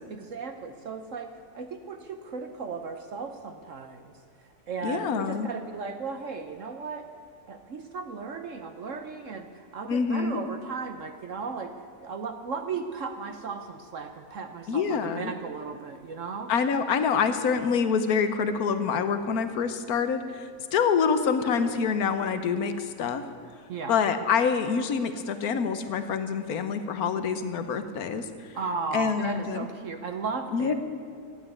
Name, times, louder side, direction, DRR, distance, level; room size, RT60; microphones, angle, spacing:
voice 1, 0.1-1.3 1.5-4.1 4.7-7.1 7.5-11.7 12.0-16.5 23.7-23.9 28.5-30.7, right 5 dB, 60° right, 6 dB, 1.0 m, -36 dB
voice 2, 4.8-5.5 9.9-10.4 14.7-15.3 16.5-23.2 23.9-28.3 28.9-29.7 30.5-30.7, left 6 dB, 65° left, 10 dB, 1.4 m, -26 dB
12.0 x 9.2 x 9.6 m, 2.4 s
omnidirectional pair, 1.7 m